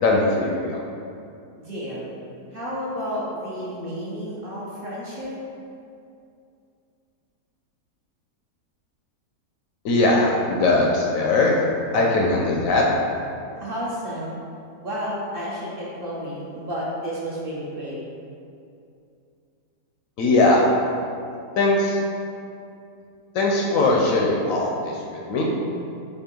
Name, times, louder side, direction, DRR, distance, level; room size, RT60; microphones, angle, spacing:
voice 1, 0.0-0.8 9.8-11.6 11.9-12.8 20.2-20.6 21.6-22.0 23.3-25.5, left 2 dB, 70° left, -2 dB, 0.9 m, -20 dB
voice 2, 1.6-2.1 2.5-5.3 13.6-14.4 14.8-18.0, equal, 45° right, -7 dB, 0.9 m, -31 dB
4.4 x 2.8 x 4.3 m, 2.5 s
omnidirectional pair, 1.7 m